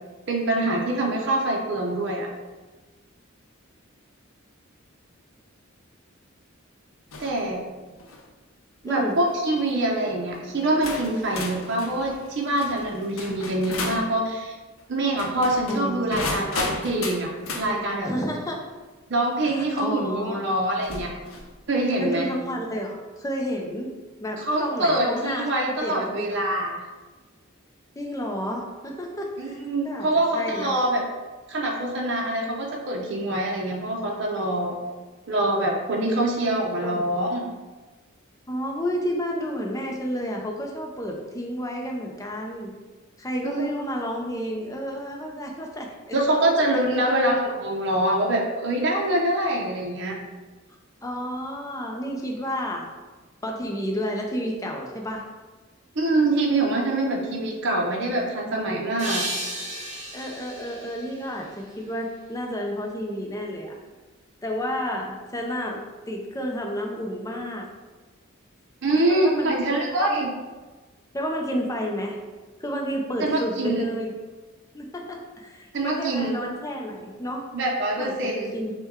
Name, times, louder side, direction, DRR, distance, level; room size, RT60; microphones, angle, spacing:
voice 1, 0.3-2.3 7.2-7.6 8.8-14.6 14.9-18.1 19.1-21.1 21.7-22.3 24.4-26.8 29.4-31.0 31.5-34.7 35.3-37.5 43.4-43.7 46.1-50.2 56.0-59.2 68.8-70.3 73.2-73.9 75.7-76.3 77.5-78.5, right 1 dB, 55° right, -1 dB, 0.6 m, -25 dB
sound 1, 7.1-7.4 7.9-8.2 9.1-9.4 10.2-10.3 10.8-14.1 15.1-17.7 19.4-19.5 20.8-21.5, left 3 dB, 85° left, 0.6 m, -34 dB
voice 2, 8.8-9.2 15.7-16.4 18.0-18.6 19.4-20.4 22.0-26.4 28.0-29.6 29.8-30.7 36.8-37.0 38.5-42.7 43.2-46.2 46.7-47.2 51.0-52.9 53.4-55.2 60.1-63.8 64.4-67.7 68.9-70.2 71.1-72.2 72.6-74.2 74.7-77.5 78.0-78.7, equal, 15° left, 1 dB, 0.5 m, -31 dB
sound 2, 59.0-62.1, right 1 dB, 35° right, 1.0 m, -34 dB
5.8 x 2.2 x 3.6 m, 1.3 s
head